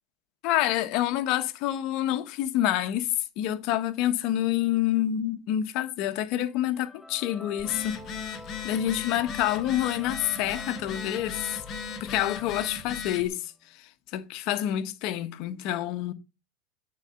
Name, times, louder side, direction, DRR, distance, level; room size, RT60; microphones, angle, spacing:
voice 1, 0.4-3.1 3.4-8.0 8.2-8.3 8.6-11.6 12.0-13.5 14.1-16.1, left 12 dB, 55° left, 1.2 m, -27 dB
sound 1, 6.5-13.4, left 2 dB, 5° left, 1.2 m, -46 dB
Telephone, 7.6-13.3, left 6 dB, 35° left, 1.6 m, -37 dB
9.2 x 4.2 x 5.3 m
supercardioid pair, 130°, 0 cm